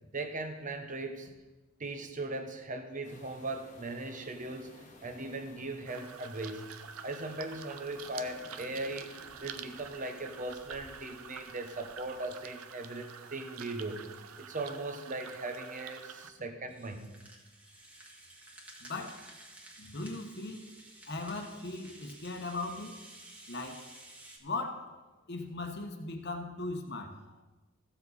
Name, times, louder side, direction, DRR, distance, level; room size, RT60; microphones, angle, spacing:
voice 1, 0.1-1.3 1.8-6.7 7.0-9.1 9.4-17.2, right 2 dB, 40° right, 6 dB, 1.0 m, -39 dB
sound 1, 3.0-12.5, left 1 dB, 35° left, 1.5 m, -58 dB
sound 2, 5.8-16.3, right 7 dB, 80° right, 0.6 m, -48 dB
Rattle (instrument), 16.7-24.4, right 1 dB, 5° right, 1.6 m, -53 dB
voice 2, 18.8-19.2 19.8-20.7 21.1-23.0 23.5-23.8 24.4-24.9 25.3-27.2, left 2 dB, 50° left, 4 dB, 1.1 m, -38 dB
15.0 x 7.1 x 4.2 m, 1.2 s
head